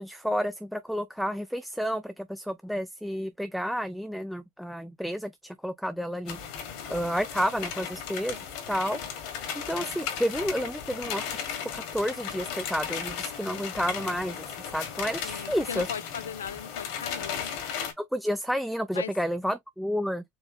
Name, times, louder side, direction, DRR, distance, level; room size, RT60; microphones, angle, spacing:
voice 1, 0.0-6.4 6.9-8.4 8.7-14.5 14.7-15.9 18.0-20.2, equal, ahead, 0.5 m, -31 dB
sound 1, 6.3-17.9, left 8 dB, 60° left, 1.7 m, -36 dB
voice 2, 15.2-17.5 18.9-19.1, left 8 dB, 85° left, 0.4 m, -38 dB
4.6 x 3.2 x 2.5 m
hypercardioid pair, 80°, 0 cm